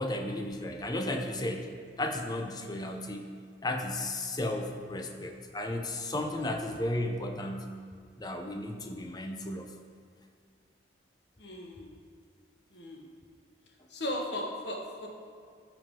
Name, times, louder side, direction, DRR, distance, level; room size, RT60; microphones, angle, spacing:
voice 1, 0.0-1.7 2.0-3.3 3.6-7.7 8.2-9.7, left 1 dB, 20° left, 4 dB, 0.7 m, -34 dB
voice 2, 11.4-11.9 12.7-13.0 13.9-15.1, left 1 dB, 65° left, 0 dB, 1.4 m, -36 dB
14.0 x 4.9 x 3.7 m, 2.2 s
head